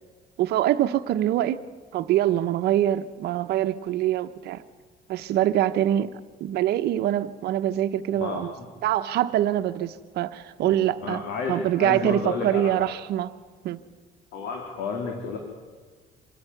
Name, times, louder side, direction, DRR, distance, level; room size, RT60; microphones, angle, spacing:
voice 1, 0.4-1.6 1.9-4.6 5.1-6.1 6.4-8.5 8.8-11.2 11.5-13.3 13.6-13.8, right 12 dB, 75° right, 1.1 m, -24 dB
voice 2, 8.1-8.7 10.6-12.9 14.3-15.4, left 5 dB, 85° left, 2.9 m, -32 dB
26.5 x 10.5 x 9.4 m
cardioid pair, 110°, 17 cm